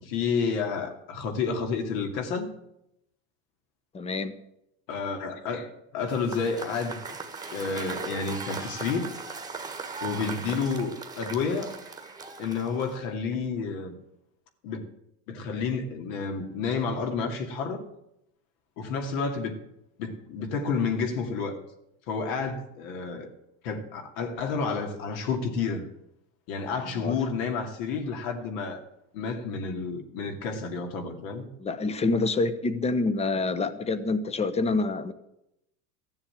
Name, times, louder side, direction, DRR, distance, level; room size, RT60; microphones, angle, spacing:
voice 1, 0.0-2.5 4.9-7.2 7.5-9.1 10.0-11.8 12.4-14.0 14.6-14.9 15.3-17.8 18.8-19.6 20.0-21.6 22.1-23.3 23.6-25.9 26.5-28.8 29.1-31.5, left 5 dB, 65° left, 2.4 m, -30 dB
voice 2, 3.9-4.3 26.9-27.1 31.6-35.1, left 3 dB, 15° left, 0.9 m, -27 dB
Cheering / Applause / Crowd, 6.0-13.1, right 4 dB, 10° right, 1.4 m, -38 dB
14.5 x 7.3 x 8.9 m
supercardioid pair, 140°, 43 cm